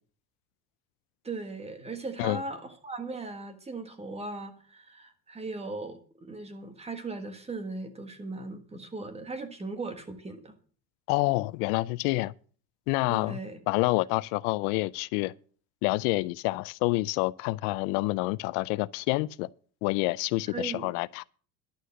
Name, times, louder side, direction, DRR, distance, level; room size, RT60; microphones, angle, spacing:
voice 1, 1.2-10.6 13.1-13.6 20.5-20.9, right 3 dB, 15° right, 1.5 m, -38 dB
voice 2, 11.1-12.3 12.9-13.4 13.7-15.3 15.8-19.5 19.8-21.2, left 22 dB, 75° left, 0.6 m, -28 dB
11.5 x 6.5 x 7.7 m
cardioid pair, 140°, 44 cm